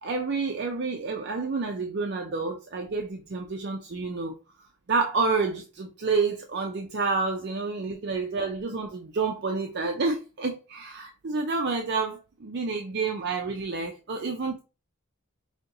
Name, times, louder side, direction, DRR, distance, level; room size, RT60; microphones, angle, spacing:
voice 1, 0.0-4.3 4.9-14.6, right 4 dB, 50° right, 0.5 m, -29 dB
5.0 x 2.8 x 2.6 m
head